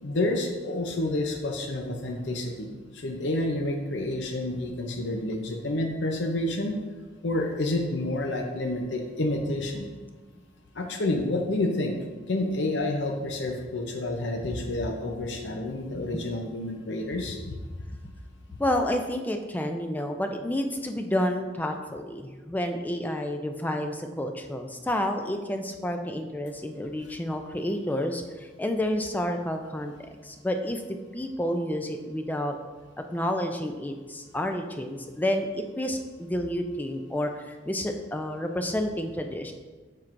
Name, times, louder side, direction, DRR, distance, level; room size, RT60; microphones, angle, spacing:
voice 1, 0.0-6.8 7.2-9.9 10.7-11.9 12.3-17.4, left 1 dB, 85° left, 3 dB, 0.7 m, -29 dB
voice 2, 18.6-30.8 31.1-32.6 33.1-39.5, left 1 dB, 10° left, 5 dB, 0.3 m, -30 dB
7.4 x 5.8 x 2.6 m, 1.3 s
head